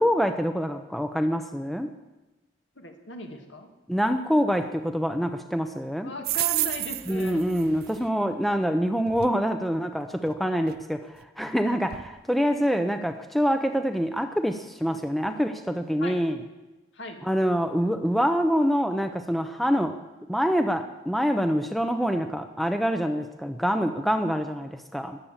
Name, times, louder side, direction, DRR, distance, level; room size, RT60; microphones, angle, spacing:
voice 1, 0.0-1.9 3.9-6.1 7.1-11.0 11.4-16.4 17.2-19.9 20.3-25.2, equal, ahead, 7 dB, 0.7 m, -25 dB
voice 2, 2.8-3.7 6.0-7.4 14.9-15.0 16.0-16.2 16.9-17.2 19.7-19.9, left 1 dB, 70° left, 4 dB, 2.2 m, -38 dB
sound 1, 6.2-8.1 9.1-9.3 10.3-10.4 10.7-10.8 11.2-11.3 11.9-12.1, right 15 dB, 50° right, 0.5 m, -30 dB
21.0 x 8.5 x 7.4 m, 1.1 s
head